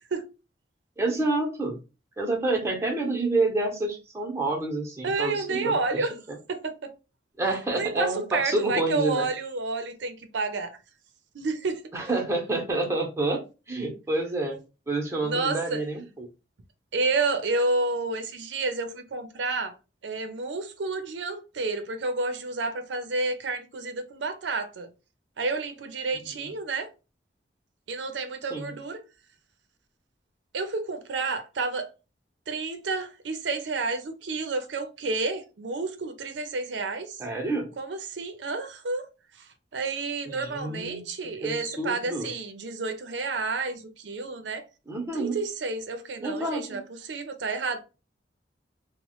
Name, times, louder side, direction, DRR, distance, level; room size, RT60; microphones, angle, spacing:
voice 1, 1.0-1.7 2.2-6.4 7.4-9.3 11.9-13.4 13.7-14.6 14.9-16.3 28.5-28.7 37.2-37.7 40.3-41.0 41.4-42.3 44.9-45.4 46.2-46.8, right 2 dB, 15° right, 0.7 m, -28 dB
voice 2, 5.0-6.2 6.5-6.9 7.7-10.7 11.3-11.8 15.2-15.8 16.9-19.7 20.0-24.9 25.4-26.9 27.9-29.0 30.5-31.9 32.5-37.2 37.8-39.1 39.3-44.6 45.1-47.8, right 3 dB, 90° right, 0.5 m, -30 dB
3.0 x 2.1 x 2.9 m
head